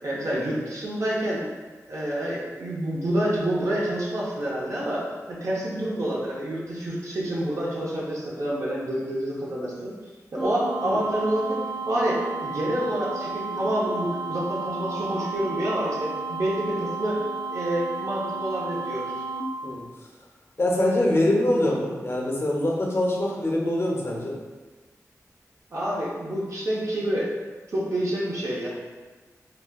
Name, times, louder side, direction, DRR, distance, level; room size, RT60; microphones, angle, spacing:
voice 1, 0.0-1.5 1.9-9.9 10.3-11.6 11.9-19.1 25.7-27.3 27.7-28.7, right 1 dB, 60° right, -5 dB, 0.6 m, -28 dB
sound 1, 10.4-19.4, right 4 dB, 5° right, 0.4 m, -33 dB
voice 2, 20.6-24.3, left 1 dB, 45° left, -2 dB, 0.6 m, -24 dB
4.0 x 2.1 x 2.2 m, 1.3 s
wide cardioid pair, 70°, 6 cm